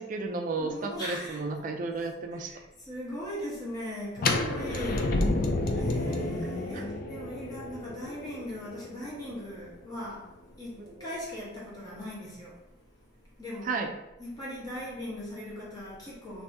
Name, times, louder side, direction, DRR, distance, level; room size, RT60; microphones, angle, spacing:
voice 1, 0.0-2.5 6.7-6.8 10.8-11.1 13.7-13.9, right 3 dB, 40° right, 5 dB, 0.3 m, -33 dB
voice 2, 0.6-1.4 2.3-5.1 5.7-10.3 10.6-12.5 13.4-13.8 14.2-16.4, equal, 20° left, -6 dB, 1.0 m, -39 dB
sound 1, 4.2-10.0, left 2 dB, 45° left, 0.4 m, -30 dB
2.6 x 2.6 x 3.4 m, 0.97 s
head